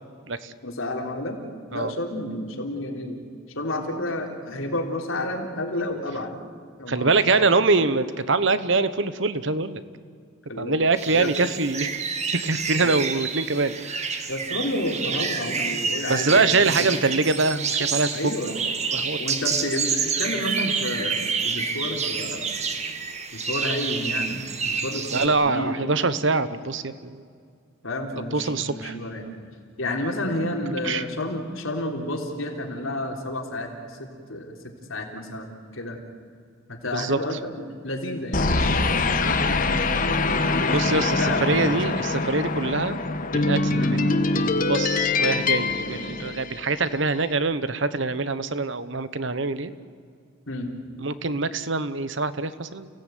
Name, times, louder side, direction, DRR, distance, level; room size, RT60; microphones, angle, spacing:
voice 1, 0.6-1.4 1.7-3.2 3.6-6.4 6.8-7.5 10.5-11.4 12.8-13.0 14.3-16.9 18.1-18.6 19.2-22.6 23.3-24.4 24.6-25.8 27.8-29.3 29.8-34.6 34.9-36.0 36.7-42.0 43.7-44.0 50.5-50.7, left 1 dB, 80° left, 2 dB, 3.6 m, -31 dB
voice 2, 6.9-9.8 10.6-11.9 12.4-14.2 16.1-18.1 18.9-19.2 25.1-27.2 28.3-28.9 30.7-31.0 36.9-37.2 40.7-43.0 43.3-44.0 44.3-49.7 51.0-52.9, right 3 dB, 60° right, 14 dB, 1.1 m, -24 dB
sound 1, 11.0-25.3, right 5 dB, 35° right, 1.6 m, -28 dB
sound 2, 38.3-46.9, left 3 dB, 40° left, 1.4 m, -24 dB
29.5 x 17.0 x 9.3 m, 2.2 s
head